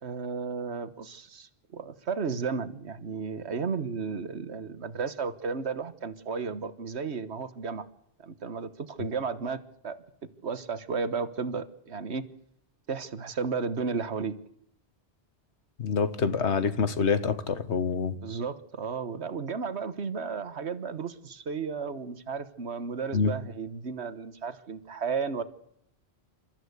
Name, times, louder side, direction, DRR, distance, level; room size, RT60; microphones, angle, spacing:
voice 1, 0.0-7.9 8.2-10.0 10.4-12.2 12.9-14.4 18.2-25.4, right 5 dB, 80° right, 1.5 m, -33 dB
voice 2, 15.8-18.2 23.1-23.3, left 5 dB, 85° left, 1.6 m, -26 dB
28.5 x 14.0 x 8.2 m
omnidirectional pair, 1.1 m